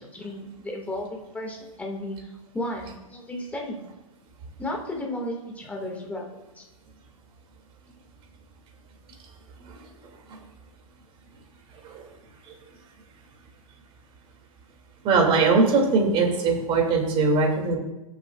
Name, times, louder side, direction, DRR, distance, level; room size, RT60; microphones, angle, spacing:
voice 1, 0.0-3.8 4.6-6.3 6.5-6.6, left 1 dB, 10° left, 0 dB, 2.0 m, -34 dB
voice 2, 15.0-17.8, right 4 dB, 30° right, 1 dB, 2.6 m, -21 dB
18.0 x 7.2 x 2.4 m, 1.0 s
hypercardioid pair, 115°, 18 cm